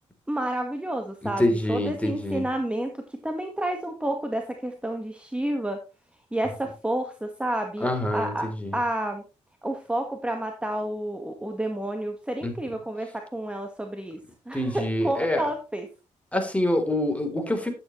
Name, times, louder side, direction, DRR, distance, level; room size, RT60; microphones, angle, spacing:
voice 1, 0.3-1.4 1.7-5.8 6.3-8.5 8.7-9.2 9.6-14.2 14.5-15.9, right 1 dB, 10° right, 4 dB, 1.6 m, -30 dB
voice 2, 1.2-2.5 7.8-8.8 12.4-12.5 14.5-15.5 16.3-17.7, left 1 dB, 10° left, 5 dB, 3.5 m, -26 dB
11.0 x 8.9 x 3.2 m, 0.31 s
cardioid pair, 65°, 13 cm